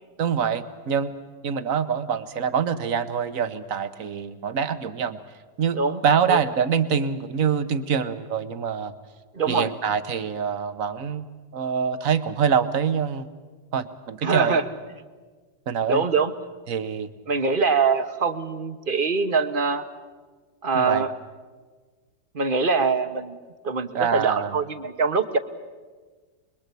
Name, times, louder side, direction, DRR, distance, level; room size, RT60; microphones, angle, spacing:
voice 1, 0.2-1.1 1.4-5.2 5.6-8.9 9.5-11.3 11.5-13.3 13.7-14.6 15.7-16.0 16.7-17.1 20.7-21.0 23.9-24.6, right 7 dB, 55° right, 11 dB, 1.4 m, -25 dB
voice 2, 9.3-9.7 14.2-14.6 15.9-16.3 17.3-19.8 20.6-21.1 22.3-23.4 23.6-25.4, right 4 dB, 35° right, 9 dB, 1.1 m, -23 dB
26.0 x 22.0 x 8.3 m, 1.4 s
omnidirectional pair, 1.8 m